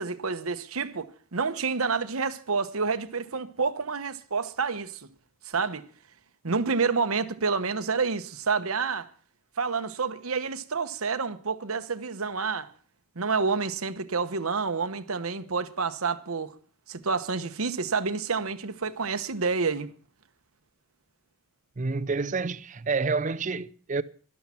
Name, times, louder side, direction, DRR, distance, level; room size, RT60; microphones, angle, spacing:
voice 1, 0.0-5.0 5.4-5.9 6.4-9.1 9.6-12.7 13.2-16.5 16.9-19.9, right 4 dB, 90° right, 1.1 m, -28 dB
voice 2, 21.8-24.0, right 4 dB, 35° right, 0.6 m, -28 dB
12.5 x 12.0 x 5.8 m
head